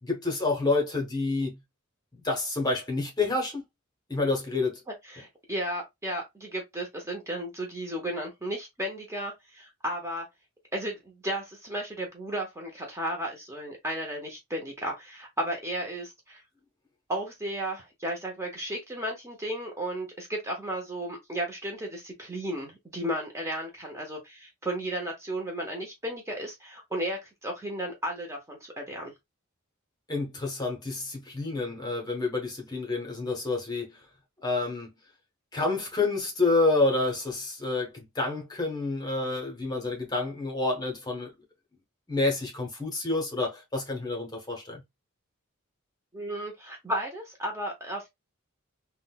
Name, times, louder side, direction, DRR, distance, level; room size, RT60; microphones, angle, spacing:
voice 1, 0.0-1.6 2.1-3.6 4.1-4.8 30.1-34.0 34.4-34.9 35.5-41.3 42.1-44.8, left 3 dB, 20° left, 0.9 m, -28 dB
voice 2, 5.1-10.3 10.7-16.4 17.1-29.1 46.1-48.1, right 1 dB, 15° right, 0.7 m, -34 dB
3.7 x 2.2 x 2.3 m
head